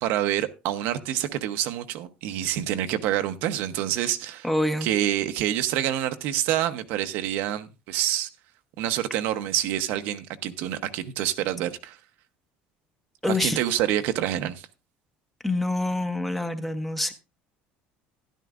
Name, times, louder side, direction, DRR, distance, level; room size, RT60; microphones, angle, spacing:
voice 1, 0.0-4.5 4.8-8.3 8.8-12.0 13.3-14.6, right 12 dB, 60° right, 0.9 m, -27 dB
voice 2, 4.4-4.9 13.2-13.6 15.4-17.1, left 1 dB, 5° left, 0.8 m, -26 dB
13.0 x 11.5 x 2.5 m
cardioid pair, 175°, 4 cm